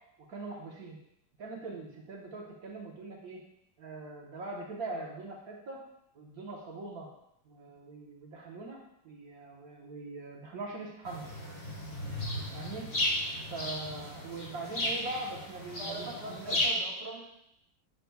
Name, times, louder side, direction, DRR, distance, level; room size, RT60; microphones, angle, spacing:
voice 1, 0.3-1.0 1.4-3.4 3.8-5.8 6.1-7.1 7.4-11.3 12.5-12.9 13.5-16.6, right 3 dB, 60° right, -2 dB, 1.5 m, -42 dB
sound 1, 11.1-16.7, left 1 dB, 35° left, 1.6 m, -35 dB
voice 2, 15.8-17.2, right 2 dB, 80° right, -4 dB, 2.2 m, -42 dB
9.1 x 5.9 x 2.3 m, 0.79 s
omnidirectional pair, 1.9 m